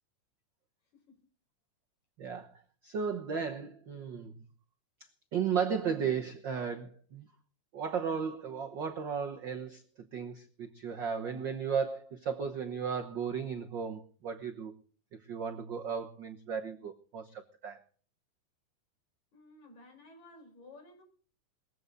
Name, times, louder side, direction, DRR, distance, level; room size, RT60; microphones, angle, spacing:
voice 1, 0.9-1.2 19.3-21.0, left 2 dB, 60° left, 3 dB, 6.1 m, -55 dB
voice 2, 2.2-2.5 2.8-4.4 5.3-7.3 7.7-9.8 10.1-14.7 15.3-17.8, right 6 dB, 85° right, 5 dB, 1.0 m, -35 dB
20.0 x 15.0 x 3.9 m, 0.42 s
omnidirectional pair, 3.7 m